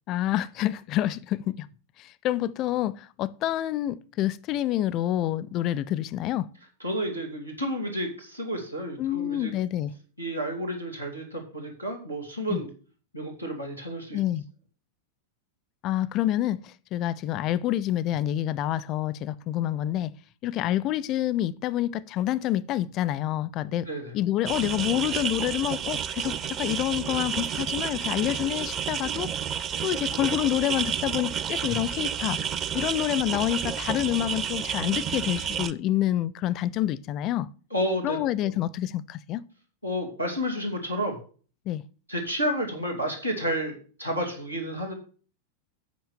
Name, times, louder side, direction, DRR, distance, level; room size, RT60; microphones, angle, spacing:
voice 1, 0.1-1.7 2.0-6.5 9.0-9.9 12.5-12.6 14.1-14.4 15.8-20.1 20.4-23.9 24.1-29.3 29.8-32.4 32.7-37.5 38.0-39.4 41.7-41.8, left 13 dB, 35° left, 0.4 m, -27 dB
voice 2, 6.8-9.5 10.2-12.7 13.1-14.2 23.9-24.1 37.7-38.2 38.4-38.5 39.8-41.2 42.1-44.9, equal, 90° right, 2.2 m, -31 dB
sound 1, 24.5-35.7, right 8 dB, 30° right, 0.6 m, -30 dB
8.3 x 5.8 x 7.0 m
figure-of-eight pair, 90°, 0 cm